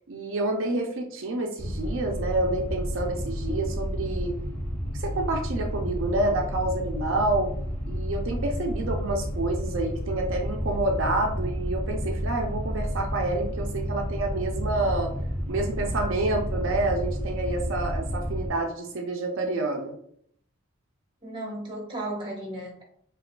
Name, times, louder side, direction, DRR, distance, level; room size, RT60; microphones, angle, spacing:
voice 1, 0.1-4.4 4.9-7.5 7.9-15.1 15.5-20.0, right 2 dB, 70° right, 1 dB, 0.5 m, -28 dB
sound 1, 1.6-18.5, equal, 10° left, 0.7 m, -31 dB
voice 2, 21.2-22.8, right 1 dB, 20° right, -2 dB, 0.9 m, -35 dB
4.7 x 2.3 x 2.2 m, 0.65 s
head